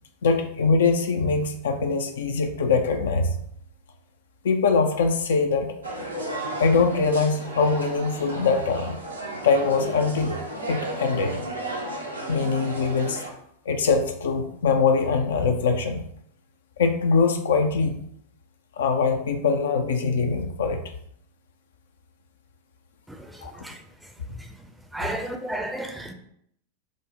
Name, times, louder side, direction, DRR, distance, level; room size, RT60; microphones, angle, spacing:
voice 1, 0.2-3.4 4.4-5.8 6.6-9.0 9.4-10.4 10.7-11.4 12.3-13.2 13.7-16.0 16.8-18.0 18.8-20.8 23.4-23.5 25.0-25.1, left 4 dB, 65° left, 6 dB, 0.4 m, -23 dB
sound 1, 5.8-13.3, right 2 dB, 80° right, 0.7 m, -34 dB
voice 2, 23.1-23.8 24.3-24.5 24.9-26.1, right 1 dB, 5° right, 4 dB, 0.5 m, -33 dB
5.1 x 2.1 x 3.7 m, 0.70 s
figure-of-eight pair, 90°, 0 cm